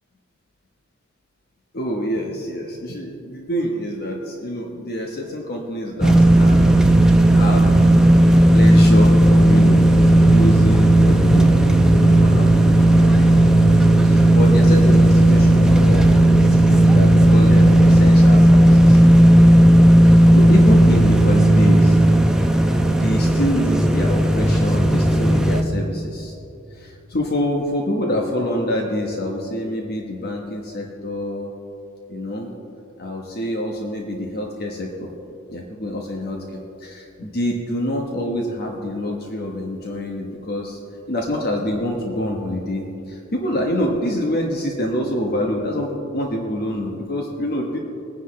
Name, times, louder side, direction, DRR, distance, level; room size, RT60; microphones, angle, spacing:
voice 1, 1.7-6.7 7.1-8.2 8.5-11.6 11.9-13.7 14.0-19.0 20.0-22.0 22.9-26.3 26.7-31.5 32.1-32.5 33.0-35.1 35.5-40.8 41.1-47.8, left 1 dB, 50° left, 0 dB, 1.2 m, -26 dB
sound 1, 6.0-25.6, right 1 dB, 5° right, 0.7 m, -13 dB
21.0 x 9.9 x 3.2 m, 2.9 s
head